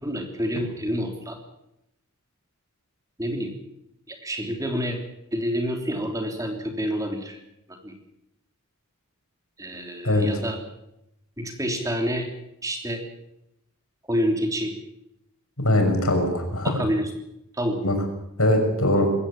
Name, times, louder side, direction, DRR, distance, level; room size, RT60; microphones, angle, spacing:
voice 1, 0.0-1.4 3.2-3.5 4.1-5.0 5.3-7.4 7.7-8.0 9.6-10.6 11.4-12.3 12.6-13.0 14.1-14.7 16.6-17.1 17.5-17.8, equal, 15° right, 4 dB, 3.2 m, -28 dB
voice 2, 15.6-16.8 17.8-17.9 18.4-19.1, left 1 dB, 75° left, 4 dB, 6.5 m, -21 dB
21.5 x 17.0 x 8.7 m, 0.84 s
head